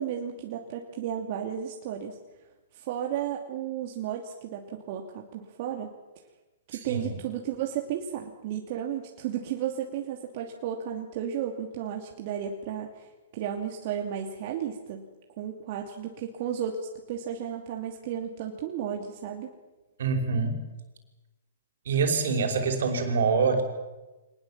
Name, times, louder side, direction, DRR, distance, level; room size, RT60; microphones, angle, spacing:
voice 1, 0.0-2.2 2.7-5.9 6.7-15.0 15.4-16.8 17.1-19.5, right 9 dB, 50° right, 2 dB, 2.8 m, -33 dB
voice 2, 6.7-7.1 20.0-20.6 21.9-23.6, right 4 dB, 70° right, 4 dB, 5.6 m, -25 dB
25.0 x 20.0 x 7.7 m, 1.1 s
hypercardioid pair, 135°, 0 cm